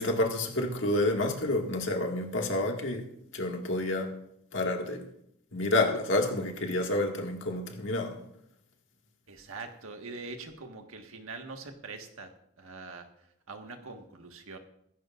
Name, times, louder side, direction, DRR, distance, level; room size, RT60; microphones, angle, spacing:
voice 1, 0.0-4.2 4.5-5.0 5.5-8.2, left 2 dB, 60° left, 2 dB, 1.9 m, -29 dB
voice 2, 9.3-14.6, right 3 dB, 80° right, 4 dB, 1.6 m, -44 dB
16.0 x 15.0 x 2.5 m, 0.76 s
head